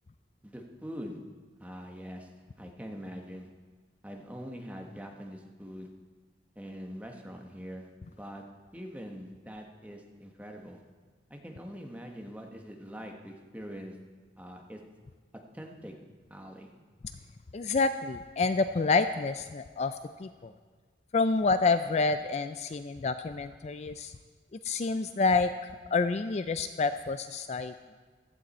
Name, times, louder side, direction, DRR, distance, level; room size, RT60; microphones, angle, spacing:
voice 1, 0.4-1.2 1.6-2.3 2.6-3.5 4.0-5.9 6.5-8.4 8.7-10.8 11.3-14.0 14.4-14.8 15.5-15.9 16.3-16.7 24.8-24.9, equal, 10° right, 2 dB, 1.3 m, -43 dB
voice 2, 17.5-20.5 21.1-24.1 24.6-27.7, left 4 dB, 40° left, 10 dB, 0.4 m, -28 dB
15.5 x 12.0 x 4.3 m, 1.4 s
head